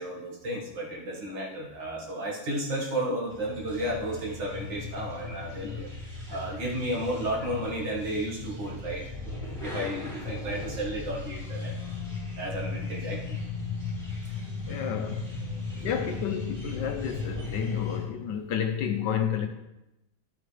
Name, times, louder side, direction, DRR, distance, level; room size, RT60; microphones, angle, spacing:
voice 1, 0.0-5.9 6.3-9.1 9.6-11.9 12.4-13.4 14.3-14.8 15.7-16.1, right 1 dB, 65° right, 2.5 m, -33 dB
sound 1, 3.3-18.0, left 3 dB, 20° right, 3.3 m, -36 dB
voice 2, 14.5-15.4 15.8-19.5, left 8 dB, 70° left, 1.2 m, -31 dB
11.5 x 7.9 x 3.4 m
omnidirectional pair, 2.2 m